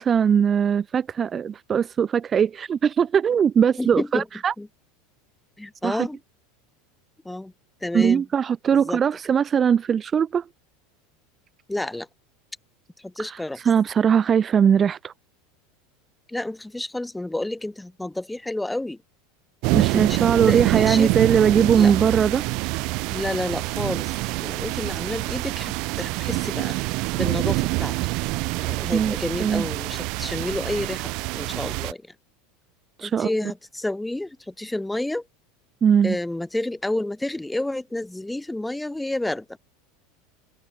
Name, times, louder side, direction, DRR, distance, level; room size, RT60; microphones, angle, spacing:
voice 1, 0.0-4.5 5.8-6.1 7.9-10.4 13.6-15.1 19.7-22.4 28.9-29.1 29.4-29.6 33.0-33.3 35.8-36.2, right 7 dB, 30° right, 1.5 m, -20 dB
voice 2, 3.8-4.3 4.6-4.7 5.6-6.2 7.2-7.5 7.8-8.3 8.7-9.0 11.7-12.1 13.0-13.6 16.3-19.0 19.7-21.2 21.7-21.9 23.1-26.8 27.1-27.9 28.6-31.1 31.3-32.1 33.0-35.2 36.0-39.6, left 1 dB, 5° left, 2.7 m, -30 dB
sound 1, 19.6-31.9, right 26 dB, 60° right, 1.1 m, -26 dB
hypercardioid pair, 90°, 0 cm